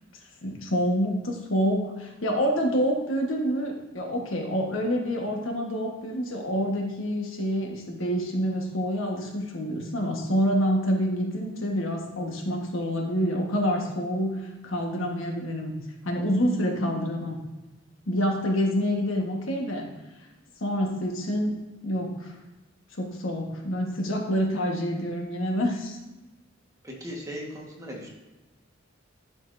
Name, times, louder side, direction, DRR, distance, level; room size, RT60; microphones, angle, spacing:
voice 1, 0.4-15.7 16.0-17.4 18.1-19.9 20.6-21.6 21.8-22.3 23.0-26.0, equal, 85° left, 1 dB, 1.3 m, -27 dB
voice 2, 26.8-28.1, equal, 15° right, -2 dB, 1.4 m, -38 dB
11.5 x 5.3 x 2.6 m, 1.1 s
head